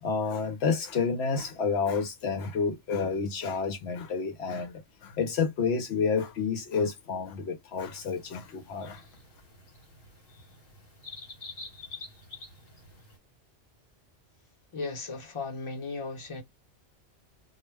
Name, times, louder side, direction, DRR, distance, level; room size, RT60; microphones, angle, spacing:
voice 1, 0.0-9.0, left 5 dB, 70° left, 0.8 m, -30 dB
sound 1, 7.8-13.2, left 3 dB, 55° left, 1.1 m, -48 dB
voice 2, 14.7-16.4, left 3 dB, 30° left, 0.7 m, -36 dB
2.3 x 2.0 x 3.2 m
omnidirectional pair, 1.2 m